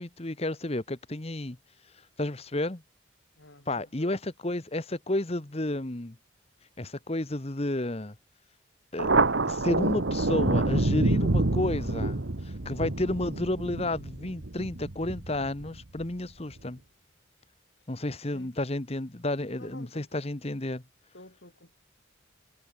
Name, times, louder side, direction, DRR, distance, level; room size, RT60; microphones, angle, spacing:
voice 1, 0.0-1.6 2.2-2.8 3.7-6.2 6.8-8.1 8.9-9.1 9.4-16.8 17.9-20.8, left 1 dB, 30° left, 1.2 m, -31 dB
voice 2, 3.4-4.1 18.3-18.5 19.6-20.2 21.1-21.7, left 1 dB, 60° left, 5.0 m, -50 dB
Thunder, 9.0-16.0, right 2 dB, 65° right, 1.4 m, -27 dB
head